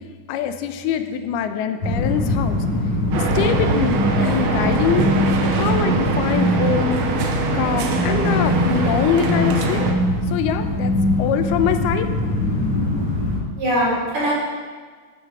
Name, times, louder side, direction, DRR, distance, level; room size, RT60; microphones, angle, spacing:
voice 1, 0.3-2.7 3.2-5.1 5.5-7.1 7.5-9.9 10.3-12.1, left 8 dB, 90° left, 8 dB, 2.7 m, -24 dB
sound 1, 1.8-13.4, left 1 dB, 40° left, 5.3 m, -22 dB
sound 2, 3.1-9.9, right 3 dB, 80° right, 2.9 m, -23 dB
voice 2, 13.6-14.3, equal, 50° right, -7 dB, 5.1 m, -22 dB
12.5 x 9.3 x 4.7 m, 1.5 s
omnidirectional pair, 4.3 m